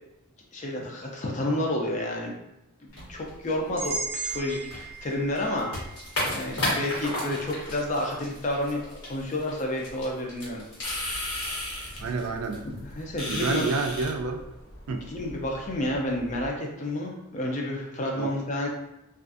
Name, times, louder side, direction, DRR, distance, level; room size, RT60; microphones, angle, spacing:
voice 1, 0.5-2.4 2.8-5.7 6.3-10.6 11.7-12.1 12.6-13.7 14.9-18.7, left 1 dB, 30° left, -1 dB, 0.4 m, -30 dB
sound 1, 2.9-13.1, left 1 dB, 80° left, 1.1 m, -36 dB
sound 2, 3.8-7.8, right 4 dB, 25° right, 0.6 m, -37 dB
sound 3, 10.8-16.5, left 1 dB, 65° left, 0.7 m, -37 dB
voice 2, 12.0-12.6 13.3-14.4 14.9-15.1 18.2-18.3, right 4 dB, 75° right, 4 dB, 0.3 m, -28 dB
2.4 x 2.4 x 2.4 m, 0.93 s
head